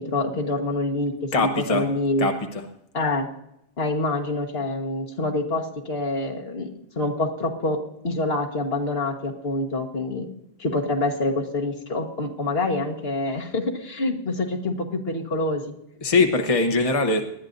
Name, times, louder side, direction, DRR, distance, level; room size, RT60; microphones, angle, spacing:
voice 1, 0.0-2.3 2.9-3.3 3.8-7.8 8.0-10.3 10.6-15.6, left 2 dB, 70° left, 2 dB, 1.7 m, -26 dB
voice 2, 1.3-1.9 2.2-2.6 16.0-17.3, left 3 dB, 35° left, 5 dB, 1.0 m, -22 dB
19.5 x 12.0 x 2.6 m, 0.77 s
omnidirectional pair, 1.1 m